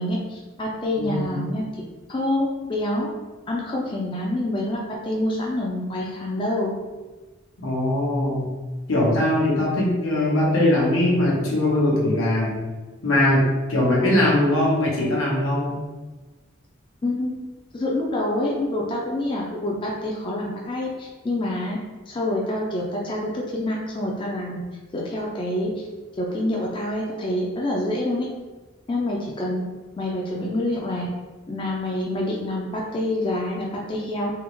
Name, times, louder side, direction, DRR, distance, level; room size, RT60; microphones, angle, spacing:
voice 1, 0.0-1.6 2.1-3.1 3.5-6.7 17.0-17.4 17.7-21.8 22.1-24.6 24.9-25.8 26.2-28.3 28.9-29.6 30.0-31.1 31.5-34.3, left 1 dB, 25° left, -2 dB, 0.3 m, -26 dB
voice 2, 1.0-1.4 7.6-8.5 8.9-12.6 13.0-15.8, left 1 dB, 85° left, -4 dB, 0.9 m, -21 dB
3.5 x 2.0 x 3.0 m, 1.2 s
head